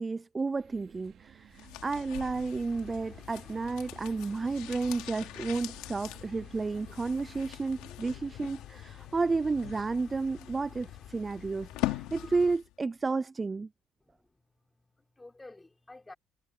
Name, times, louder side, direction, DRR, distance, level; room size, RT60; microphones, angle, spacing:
voice 1, 0.0-13.7, right 3 dB, 15° right, 0.3 m, -32 dB
sound 1, 0.6-7.7, right 9 dB, 45° right, 3.1 m, -56 dB
sound 2, 1.5-12.7 13.0-13.1, left 17 dB, 90° left, 2.8 m, -42 dB
sound 3, 2.7-12.6, left 6 dB, 30° left, 4.5 m, -53 dB
voice 2, 14.0-14.4 15.0-16.1, left 2 dB, 10° left, 3.6 m, -51 dB
cardioid pair, 150°, 0 cm